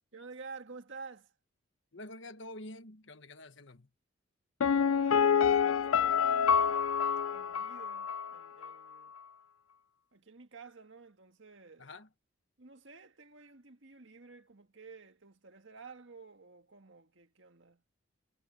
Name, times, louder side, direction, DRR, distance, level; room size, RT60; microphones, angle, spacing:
voice 1, 0.1-1.3 4.9-6.8 7.3-9.1 10.1-11.9 12.6-17.8, right 4 dB, 60° right, 1.8 m, -51 dB
voice 2, 1.9-3.9 11.8-12.1, left 1 dB, 60° left, 1.4 m, -47 dB
Piano, 4.6-8.4 8.6-8.7, left 7 dB, 90° left, 0.5 m, -27 dB
head